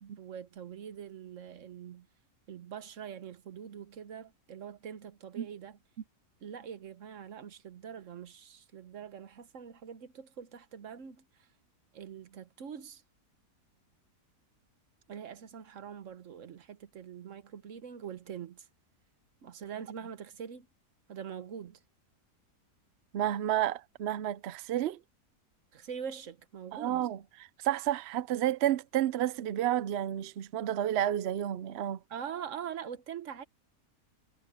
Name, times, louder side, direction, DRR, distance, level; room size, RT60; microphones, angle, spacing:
voice 1, 0.0-2.1 2.5-5.8 6.4-11.2 11.9-13.0 15.1-18.7 19.4-20.7 21.1-21.8 25.7-27.1 32.1-33.4, right 8 dB, 55° right, 1.3 m, -43 dB
voice 2, 23.1-25.0 26.7-32.0, right 12 dB, 70° right, 0.6 m, -31 dB
omnidirectional pair, 1.7 m